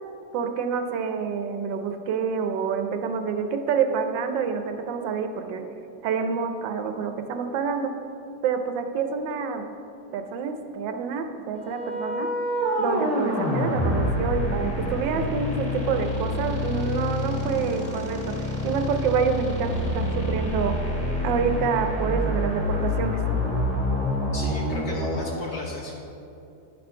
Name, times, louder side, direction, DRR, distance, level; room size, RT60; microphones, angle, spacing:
voice 1, 0.3-5.6 6.0-7.9 8.4-9.6 10.1-12.3 12.8-20.7 21.2-23.2, right 6 dB, 80° right, 6 dB, 1.3 m, -27 dB
sound 1, 11.5-25.4, left 1 dB, 5° left, 1.5 m, -27 dB
voice 2, 24.3-26.0, left 3 dB, 65° left, -1 dB, 1.1 m, -36 dB
10.5 x 4.3 x 5.4 m, 2.7 s
omnidirectional pair, 2.0 m